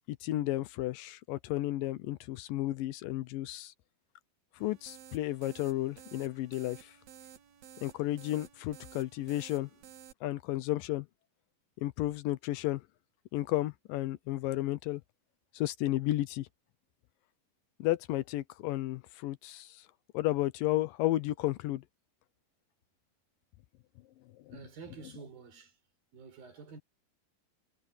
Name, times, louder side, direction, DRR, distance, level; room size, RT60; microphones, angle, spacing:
voice 1, 0.2-3.7 4.6-6.9 7.8-9.7 10.2-11.1 11.8-12.8 13.3-15.0 15.5-16.5 17.8-19.8 20.1-21.8, left 15 dB, 80° left, 2.3 m, -33 dB
sound 1, 4.6-10.1, right 9 dB, 60° right, 2.4 m, -54 dB
voice 2, 24.5-25.8 26.1-26.8, right 5 dB, 80° right, 6.1 m, -49 dB
omnidirectional pair, 4.2 m